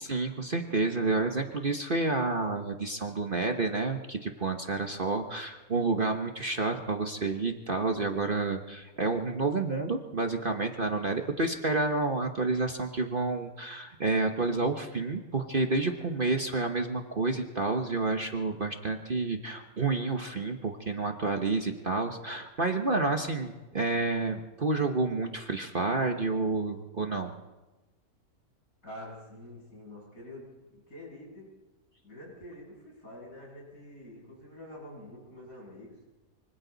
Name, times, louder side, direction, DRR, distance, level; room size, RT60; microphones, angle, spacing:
voice 1, 0.0-27.3, right 3 dB, 35° right, 4 dB, 1.2 m, -29 dB
voice 2, 28.8-31.5 32.0-36.0, left 1 dB, 60° left, -3 dB, 8.3 m, -47 dB
26.0 x 25.0 x 4.0 m, 1.1 s
omnidirectional pair, 1.6 m